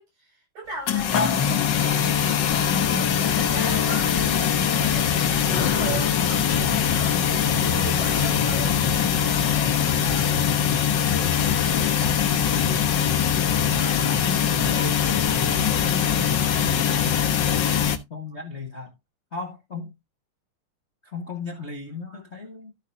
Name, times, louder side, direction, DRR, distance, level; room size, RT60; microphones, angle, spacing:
voice 1, 0.0-7.2 7.6-10.3 11.0-15.8, right 3 dB, 70° right, 8.7 m, -39 dB
sound 1, 0.9-18.0, left 8 dB, 70° left, 1.1 m, -22 dB
voice 2, 18.1-18.9 19.3-19.9 21.0-22.7, left 4 dB, 30° left, 1.3 m, -36 dB
14.0 x 6.5 x 2.7 m
omnidirectional pair, 3.5 m